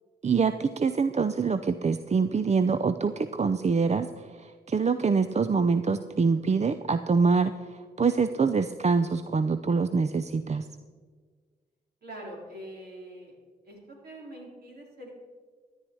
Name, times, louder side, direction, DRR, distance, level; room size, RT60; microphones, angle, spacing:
voice 1, 0.2-10.7, right 5 dB, 40° right, 11 dB, 0.6 m, -25 dB
voice 2, 12.0-13.4 13.6-15.1, right 1 dB, 60° right, -2 dB, 4.1 m, -44 dB
14.0 x 9.9 x 4.7 m, 1.5 s
supercardioid pair, 45°, 18 cm